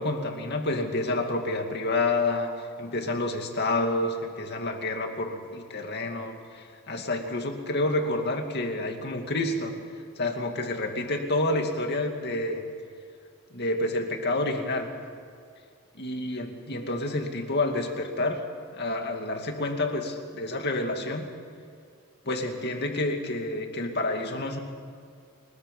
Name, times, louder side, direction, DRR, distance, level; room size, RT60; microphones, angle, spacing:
voice 1, 0.0-2.5 2.8-9.8 10.2-12.7 13.5-14.9 16.0-18.4 18.7-21.3 22.3-24.6, left 2 dB, 45° left, 4 dB, 2.4 m, -29 dB
30.0 x 21.0 x 5.6 m, 2.3 s
head